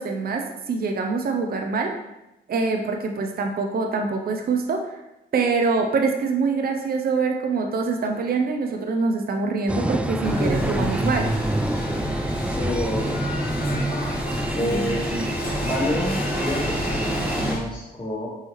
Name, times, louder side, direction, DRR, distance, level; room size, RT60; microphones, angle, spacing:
voice 1, 0.0-1.9 2.5-5.0 5.3-11.3 14.6-15.0, right 4 dB, 50° right, 3 dB, 0.6 m, -24 dB
sound 1, 9.7-17.5, right 1 dB, 5° right, 0.3 m, -27 dB
sound 2, 10.2-17.6, left 1 dB, 50° left, 1.5 m, -30 dB
voice 2, 12.6-13.3 14.5-15.3 15.6-18.3, left 1 dB, 25° left, -6 dB, 1.1 m, -28 dB
5.5 x 2.8 x 3.1 m, 0.94 s
supercardioid pair, 50°, 20 cm